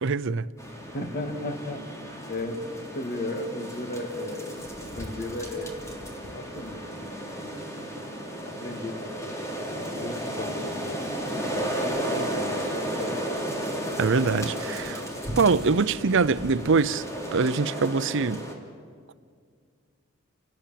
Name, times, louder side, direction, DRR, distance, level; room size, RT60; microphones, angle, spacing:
voice 1, 0.0-0.5 14.0-15.1 15.4-17.0 17.3-18.4, right 4 dB, 65° right, 0.7 m, -23 dB
sound 1, 0.6-18.5, right 1 dB, 15° left, 3.4 m, -34 dB
voice 2, 0.9-2.7 2.9-5.8 6.3-7.7 8.0-8.2 8.4-9.4 9.7-11.0 11.5-13.4, left 1 dB, 45° left, 2.1 m, -36 dB
29.0 x 18.5 x 7.6 m
head